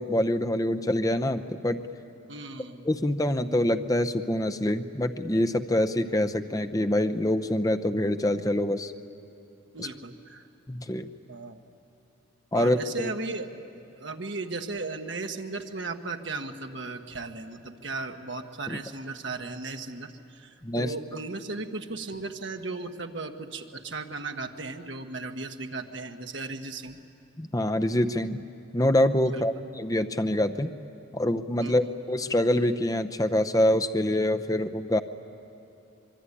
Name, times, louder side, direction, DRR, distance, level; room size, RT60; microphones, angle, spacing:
voice 1, 0.0-1.8 2.8-8.9 9.8-9.9 10.7-11.1 12.5-13.1 18.7-18.8 20.6-20.9 27.4-28.4 28.7-30.7 31.1-35.0, left 1 dB, 15° left, 8 dB, 0.7 m, -25 dB
voice 2, 2.3-2.9 9.7-10.5 11.3-11.6 12.5-13.5 13.7-27.0 29.2-29.4 31.6-31.9, right 3 dB, 60° right, 5 dB, 1.4 m, -36 dB
25.0 x 23.0 x 9.9 m, 2.6 s
head